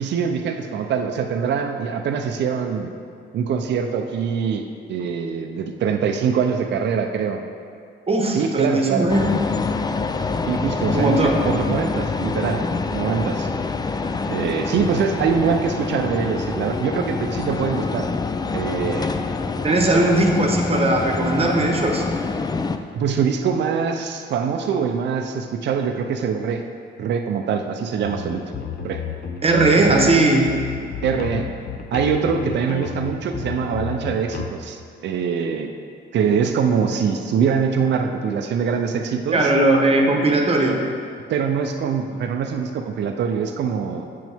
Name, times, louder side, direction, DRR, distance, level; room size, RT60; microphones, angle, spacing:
voice 1, 0.0-2.9 3.3-4.6 4.9-7.4 8.3-9.1 10.4-13.5 14.3-18.1 18.5-19.2 23.0-26.6 27.0-28.4 28.8-29.1 29.7-30.1 31.0-31.5 31.9-35.7 36.1-39.5 41.3-44.1, right 6 dB, 60° right, 5 dB, 0.5 m, -23 dB
voice 2, 8.1-9.3 10.9-11.4 19.6-22.0 29.4-30.4 39.3-40.8, right 2 dB, 30° right, 1 dB, 1.0 m, -18 dB
sound 1, 9.1-22.8, left 4 dB, 20° left, 0.4 m, -26 dB
sound 2, 28.0-34.5, left 7 dB, 50° left, 0.7 m, -31 dB
7.8 x 6.2 x 3.5 m, 2.2 s
cardioid pair, 90°, 20 cm